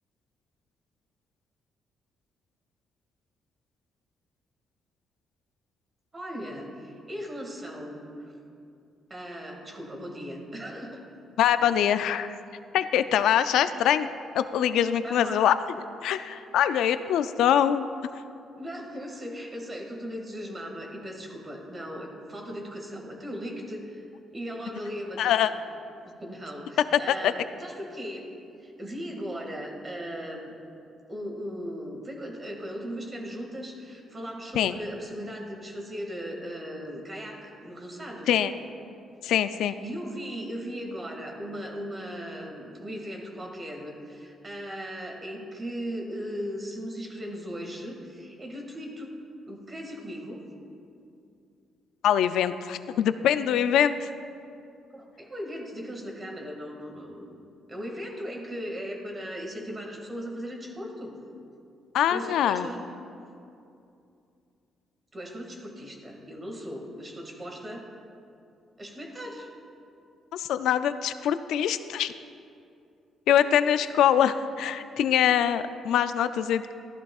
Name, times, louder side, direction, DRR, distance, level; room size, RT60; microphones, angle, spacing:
voice 1, 6.1-8.3 9.1-11.0 15.0-15.5 18.6-24.0 24.3-25.5 26.0-28.3 28.6-30.5 31.1-38.3 39.8-49.1 49.5-50.4 54.9-57.4 57.7-61.2 62.1-62.8 65.1-67.9 68.8-69.5, equal, 30° right, 1 dB, 2.0 m, -38 dB
voice 2, 11.4-12.4 12.7-14.1 14.3-15.5 16.0-17.9 25.2-25.5 27.2-27.3 34.6-34.7 38.3-38.5 39.2-39.8 52.0-54.1 61.9-62.7 70.3-72.1 73.3-76.7, left 10 dB, 80° left, 12 dB, 0.4 m, -23 dB
14.0 x 11.5 x 2.4 m, 2.5 s
cardioid pair, 90°, 0 cm